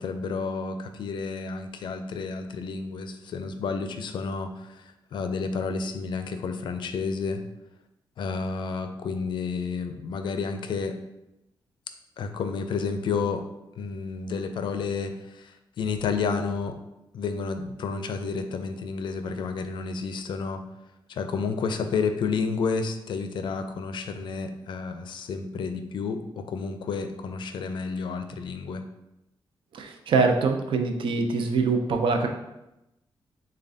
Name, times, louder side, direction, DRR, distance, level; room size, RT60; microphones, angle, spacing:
voice 1, 0.0-7.4 8.2-11.0 12.2-13.4 13.8-16.8 17.1-20.6 21.1-28.8, left 5 dB, 65° left, 7 dB, 0.4 m, -31 dB
voice 2, 29.7-32.3, right 4 dB, 75° right, 4 dB, 0.5 m, -24 dB
6.6 x 2.2 x 2.6 m, 0.90 s
wide cardioid pair, 180°, 9 cm